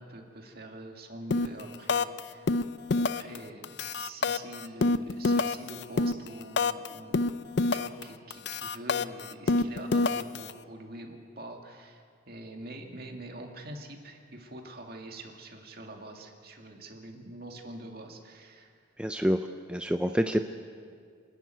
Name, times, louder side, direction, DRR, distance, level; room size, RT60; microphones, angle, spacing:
voice 1, 0.0-2.6 2.9-18.7, right 1 dB, 50° right, 2 dB, 2.3 m, -45 dB
sound 1, 1.3-1.6 1.9-2.2 2.5-3.4 3.6-6.9 7.1-8.0 8.3-10.5, left 3 dB, 55° left, 0.5 m, -26 dB
voice 2, 19.0-19.4 19.7-20.4, equal, 5° right, 6 dB, 0.4 m, -26 dB
26.5 x 12.0 x 9.3 m, 2.2 s
head